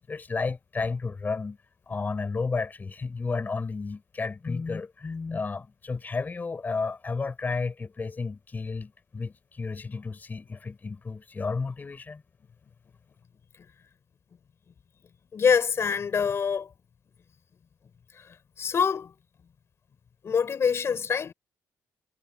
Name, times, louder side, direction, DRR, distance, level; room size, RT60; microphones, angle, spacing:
voice 1, 0.1-1.6 1.9-12.2, left 4 dB, 30° left, 4.5 m, -32 dB
voice 2, 15.3-16.7 18.6-19.1 20.2-21.3, left 6 dB, 45° left, 5.3 m, -25 dB
cardioid pair, 105°, 6 cm